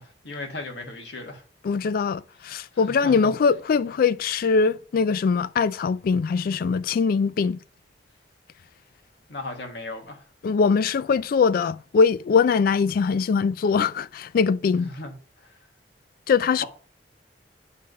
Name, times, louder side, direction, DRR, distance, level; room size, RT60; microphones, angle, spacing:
voice 1, 0.0-1.4 2.7-3.3 9.3-10.2 14.8-15.1 15.4-15.5, left 2 dB, 75° left, 1.6 m, -36 dB
voice 2, 1.6-7.6 10.4-14.9 16.3-16.6, left 5 dB, 55° left, 0.3 m, -22 dB
8.6 x 3.5 x 5.2 m
head